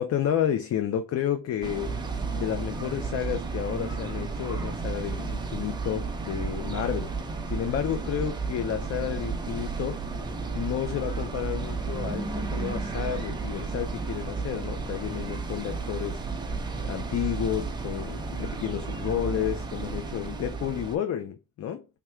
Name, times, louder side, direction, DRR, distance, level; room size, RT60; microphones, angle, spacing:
voice 1, 0.0-10.1 10.5-21.9, left 10 dB, 50° left, 0.4 m, -31 dB
sound 1, 1.6-21.0, right 4 dB, 15° right, 0.4 m, -33 dB
3.5 x 2.2 x 4.3 m
cardioid pair, 175°, 33 cm